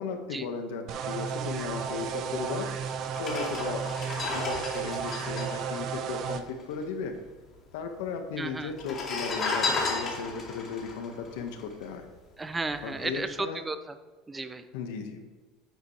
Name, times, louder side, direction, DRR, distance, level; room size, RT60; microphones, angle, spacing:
voice 1, 0.0-2.9 3.2-3.9 4.3-7.1 7.7-12.1 12.8-13.6 14.7-15.2, left 5 dB, 85° left, 5 dB, 1.6 m, -36 dB
sound 1, 0.9-6.4, right 7 dB, 45° right, 0.8 m, -33 dB
sound 2, 2.4-2.5 3.1-6.8 7.0-7.1 7.3-8.0 8.7-12.2 12.6-12.8, left 3 dB, 30° left, 2.3 m, -33 dB
voice 2, 8.4-8.7 12.4-14.0 14.3-14.7, right 3 dB, 15° right, 10 dB, 0.6 m, -34 dB
9.7 x 9.0 x 3.4 m, 1.3 s
supercardioid pair, 140°, 0 cm